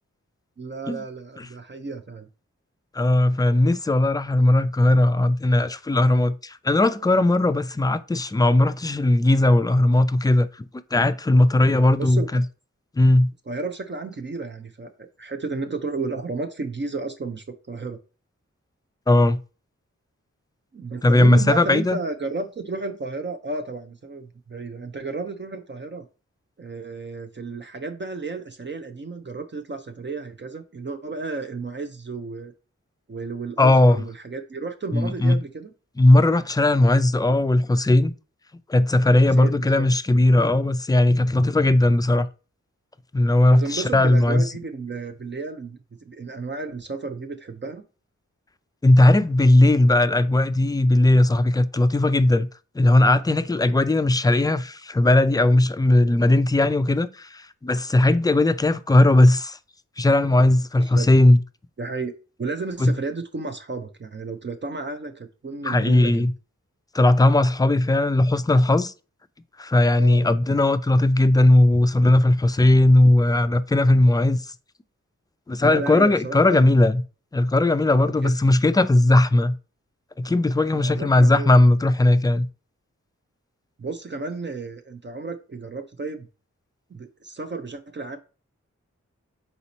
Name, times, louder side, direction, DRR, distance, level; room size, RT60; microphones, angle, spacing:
voice 1, 0.6-2.3 11.9-12.3 13.5-14.9 15.2-18.0 20.7-26.1 26.6-32.5 33.1-35.7 39.1-39.9 43.5-45.8 46.1-47.8 60.8-61.1 61.8-62.1 62.4-66.3 70.0-70.3 75.6-76.7 77.9-78.3 80.7-81.5 83.8-86.3 86.9-88.2, right 3 dB, 40° right, 0.6 m, -32 dB
voice 2, 2.9-10.5 10.9-12.4 13.0-13.3 19.1-19.4 21.0-22.0 33.6-34.0 34.9-35.4 36.0-38.1 38.7-42.3 43.1-44.4 48.8-52.5 52.7-59.6 60.0-61.4 62.8-62.9 65.6-66.3 66.9-68.9 69.6-74.4 75.5-77.0 77.3-79.5 80.2-82.5, left 1 dB, 15° left, 0.4 m, -18 dB
4.1 x 2.9 x 4.1 m
cardioid pair, 45°, 29 cm